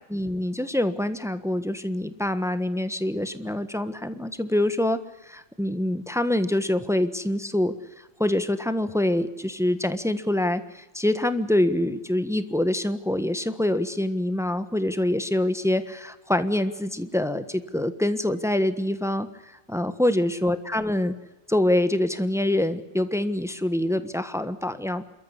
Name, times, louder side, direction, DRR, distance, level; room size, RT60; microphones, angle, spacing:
voice 1, 0.1-7.7 8.2-19.3 19.7-21.1 21.5-25.0, left 1 dB, ahead, 11 dB, 1.0 m, -25 dB
28.5 x 14.0 x 9.9 m, 0.99 s
omnidirectional pair, 2.2 m